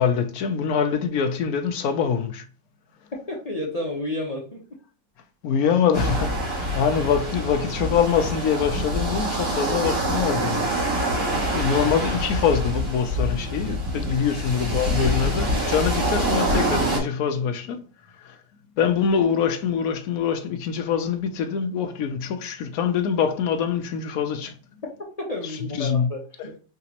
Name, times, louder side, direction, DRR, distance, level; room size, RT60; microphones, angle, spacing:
voice 1, 0.0-2.5 5.4-10.7 11.5-17.8 18.2-18.4 18.8-24.5 25.7-26.1, left 7 dB, 70° left, 1.0 m, -24 dB
voice 2, 3.3-4.6 11.1-11.4 14.0-14.1 25.2-26.6, left 1 dB, 35° left, 0.7 m, -31 dB
sound 1, 5.9-17.0, equal, 75° right, 2.6 m, -25 dB
4.9 x 3.0 x 2.9 m
omnidirectional pair, 1.8 m